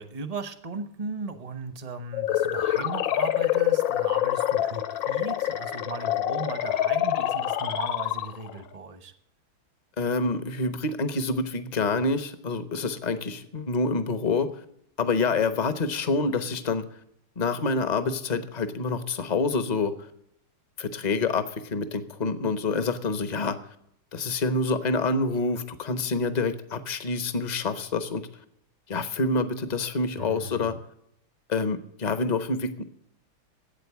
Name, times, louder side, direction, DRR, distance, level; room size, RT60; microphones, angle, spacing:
voice 1, 0.0-9.1 30.2-30.8, right 3 dB, 35° right, 11 dB, 0.6 m, -37 dB
sound 1, 2.1-8.6, left 12 dB, 65° left, 1.5 m, -26 dB
voice 2, 10.0-14.5 15.0-16.8 17.4-20.1 20.8-23.6 24.1-28.3 28.9-30.8 31.5-32.8, left 3 dB, 40° left, 11 dB, 0.6 m, -27 dB
12.0 x 8.6 x 8.4 m, 0.74 s
omnidirectional pair, 2.3 m